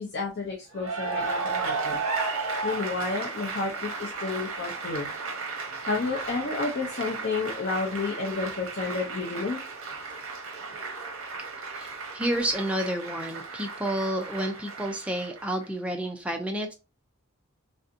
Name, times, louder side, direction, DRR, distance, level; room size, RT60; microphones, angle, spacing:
voice 1, 0.0-2.2 2.6-5.1 5.9-9.6, left 3 dB, 50° left, 0 dB, 0.5 m, -31 dB
Cheering / Applause, 0.7-15.6, right 4 dB, 80° right, 0.8 m, -34 dB
voice 2, 11.7-16.7, right 1 dB, 5° right, 3 dB, 0.4 m, -30 dB
3.3 x 2.6 x 2.5 m, 0.30 s
head